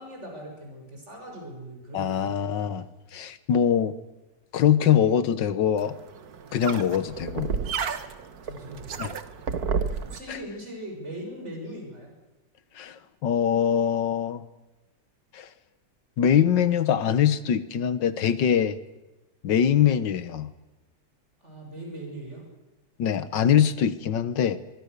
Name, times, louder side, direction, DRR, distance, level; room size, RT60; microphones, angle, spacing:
voice 1, 0.0-2.4 8.4-9.0 10.0-12.1 21.4-22.4, right 1 dB, 35° right, 0 dB, 7.2 m, -40 dB
voice 2, 1.9-2.9 3.1-4.0 4.5-6.0 6.5-7.5 9.0-9.1 10.3-10.4 12.8-14.4 15.3-15.5 16.2-18.8 19.4-20.5 23.0-24.6, left 9 dB, 70° left, 14 dB, 1.8 m, -23 dB
sound 1, 5.8-10.2, right 6 dB, 55° right, 1.7 m, -31 dB
25.0 x 23.5 x 6.8 m, 1.0 s
omnidirectional pair, 2.0 m